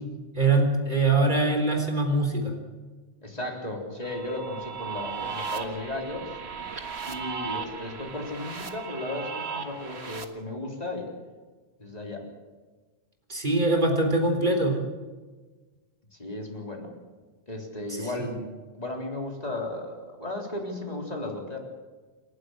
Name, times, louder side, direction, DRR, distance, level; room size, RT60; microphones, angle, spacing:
voice 1, 0.3-2.5 13.3-14.8 17.9-18.4, right 2 dB, 40° right, 3 dB, 4.3 m, -23 dB
voice 2, 3.2-6.4 7.1-11.2 11.8-12.3 16.1-16.9 17.5-18.4 18.7-21.6, left 2 dB, 35° left, 0 dB, 4.0 m, -35 dB
sound 1, 4.0-10.2, right 5 dB, 70° right, 1.9 m, -36 dB
28.5 x 12.0 x 8.0 m, 1.3 s
omnidirectional pair, 1.2 m